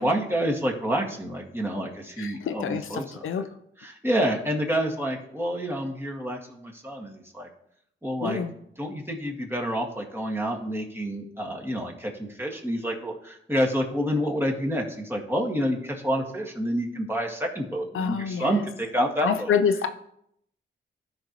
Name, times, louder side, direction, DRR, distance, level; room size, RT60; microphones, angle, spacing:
voice 1, 0.0-3.4 3.8-7.5 8.0-8.4 8.8-19.5, equal, 10° right, 0 dB, 1.9 m, -28 dB
voice 2, 2.2-3.4 8.2-8.5 17.9-18.6 19.2-19.9, left 7 dB, 75° left, 8 dB, 0.6 m, -27 dB
12.5 x 5.3 x 3.0 m, 0.73 s
cardioid pair, 60°, 21 cm